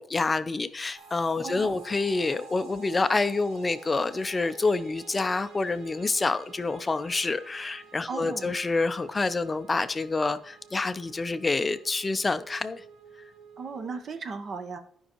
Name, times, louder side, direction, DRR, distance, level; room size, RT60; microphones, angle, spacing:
voice 1, 0.0-12.8, left 3 dB, 20° left, 13 dB, 0.4 m, -27 dB
sound 1, 0.9-14.0, right 4 dB, 80° right, 1.6 m, -50 dB
voice 2, 1.4-1.8 8.1-8.6 13.6-14.8, right 4 dB, 45° right, 8 dB, 0.8 m, -36 dB
14.5 x 5.4 x 3.0 m, 0.63 s
cardioid pair, 155°, 0 cm